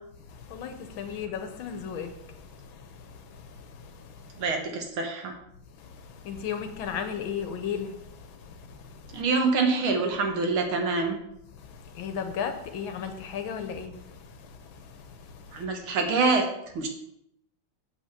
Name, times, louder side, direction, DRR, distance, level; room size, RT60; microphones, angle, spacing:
voice 1, 0.2-4.4 5.7-9.2 11.5-15.7, left 7 dB, 70° left, 1.4 m, -37 dB
voice 2, 4.4-5.3 9.1-11.2 15.5-16.4 16.8-16.9, right 4 dB, 70° right, 2.0 m, -25 dB
6.5 x 5.6 x 5.6 m
omnidirectional pair, 2.4 m